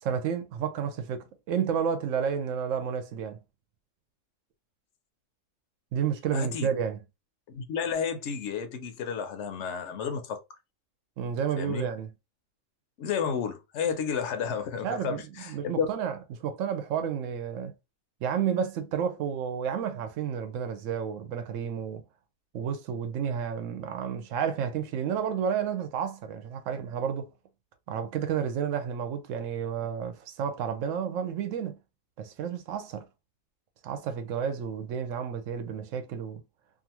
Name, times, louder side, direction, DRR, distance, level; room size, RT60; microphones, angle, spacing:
voice 1, 0.0-3.4 5.9-7.0 11.2-12.1 14.8-17.7 18.2-22.1 22.5-27.3 27.9-31.8 32.2-33.1 33.8-36.4, right 7 dB, 80° right, 0.9 m, -31 dB
voice 2, 6.3-6.7 7.5-10.4 11.6-11.9 13.0-15.9, left 6 dB, 70° left, 0.9 m, -31 dB
2.6 x 2.4 x 2.8 m
omnidirectional pair, 1.3 m